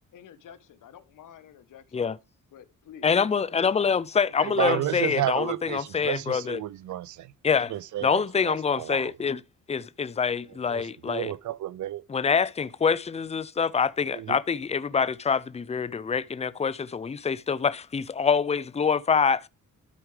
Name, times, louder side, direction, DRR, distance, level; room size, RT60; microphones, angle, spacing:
voice 1, 0.1-1.8 2.5-3.1, left 8 dB, 75° left, 1.0 m, -49 dB
voice 2, 3.0-6.6 7.4-7.7 8.0-9.4 9.7-11.3 12.1-19.5, left 6 dB, 20° left, 0.5 m, -25 dB
voice 3, 4.4-7.3 7.7-9.1 10.7-12.0 14.1-14.4, right 13 dB, 65° right, 0.5 m, -32 dB
12.5 x 4.8 x 3.2 m
cardioid pair, 75°, 32 cm